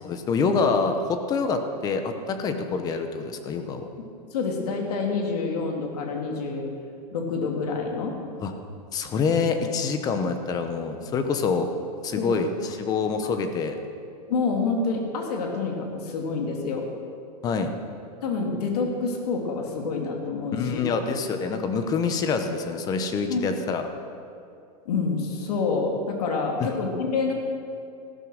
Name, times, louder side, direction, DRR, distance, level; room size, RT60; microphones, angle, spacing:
voice 1, 0.0-3.9 8.4-8.5 8.9-11.7 12.0-13.8 17.4-17.7 20.5-23.8 26.6-26.7, left 5 dB, 20° left, 7 dB, 0.9 m, -26 dB
voice 2, 4.3-6.7 7.1-8.2 12.2-12.4 13.3-13.4 14.3-16.9 18.2-20.8 23.3-23.4 24.8-27.3, left 4 dB, 65° left, 1 dB, 2.8 m, -27 dB
15.0 x 12.5 x 6.4 m, 2.5 s
supercardioid pair, 165°, 21 cm